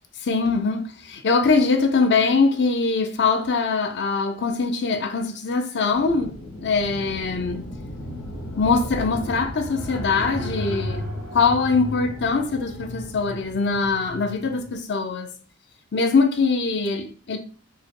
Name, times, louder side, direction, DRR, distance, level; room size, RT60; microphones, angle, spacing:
voice 1, 0.2-6.3 6.6-7.7 8.6-11.0 11.3-15.3 15.9-17.4, left 4 dB, 50° left, 0.7 m, -22 dB
sound 1, 5.9-14.7, left 1 dB, 85° left, 1.8 m, -34 dB
4.7 x 2.2 x 4.7 m
head